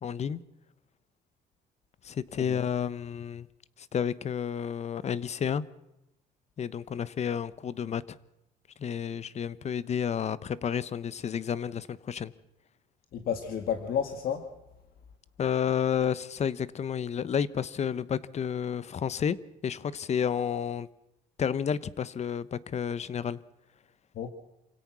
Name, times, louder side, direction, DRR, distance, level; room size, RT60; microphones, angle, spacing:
voice 1, 0.0-0.4 2.0-3.5 3.9-5.6 6.6-8.2 8.8-12.3 15.4-19.4 19.6-20.9 21.4-23.4, left 8 dB, 40° left, 18 dB, 1.1 m, -31 dB
voice 2, 13.1-14.5 24.1-24.3, left 8 dB, 60° left, 7 dB, 2.1 m, -31 dB
28.0 x 17.0 x 6.3 m, 0.92 s
cardioid pair, 110°, 17 cm